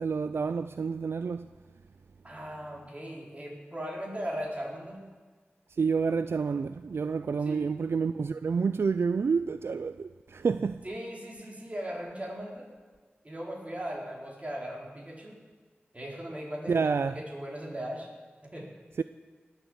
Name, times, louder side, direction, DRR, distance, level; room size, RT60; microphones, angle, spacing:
voice 1, 0.0-1.5 5.8-10.8 16.7-17.2 19.0-19.1, right 5 dB, 75° right, 0.4 m, -29 dB
voice 2, 2.2-5.0 7.4-7.6 10.8-12.7 13.2-15.4 15.9-18.1 18.5-18.7, equal, 35° right, 4.1 m, -38 dB
20.0 x 8.2 x 7.8 m
wide cardioid pair, 55°, 4 cm